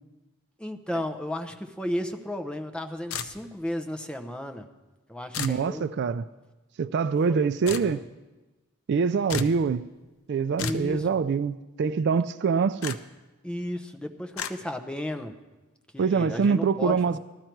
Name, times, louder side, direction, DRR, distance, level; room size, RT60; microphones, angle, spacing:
voice 1, 0.6-4.7 5.1-5.9 7.3-8.0 10.6-11.0 13.4-15.3 15.9-17.0, left 1 dB, 5° left, 0.8 m, -34 dB
sound 1, 3.1-3.7 5.3-5.6 7.7-7.9 9.3-9.6 10.6-10.9 12.8-13.0 14.4-14.5, left 5 dB, 70° left, 0.7 m, -32 dB
voice 2, 5.4-6.2 6.8-8.0 8.9-9.9 10.3-13.0 16.0-17.2, right 5 dB, 55° right, 0.3 m, -24 dB
15.5 x 13.0 x 4.6 m
head